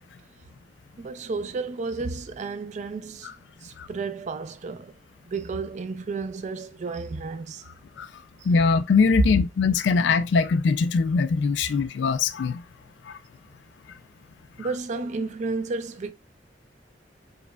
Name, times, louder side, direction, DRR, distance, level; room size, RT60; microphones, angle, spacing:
voice 1, 1.0-3.3 3.6-5.0 5.3-7.6 8.4-8.5 14.6-16.1, right 4 dB, 40° right, 0.3 m, -32 dB
voice 2, 8.5-12.6 13.1-13.2, left 5 dB, 85° left, 0.3 m, -22 dB
4.8 x 2.2 x 2.2 m
head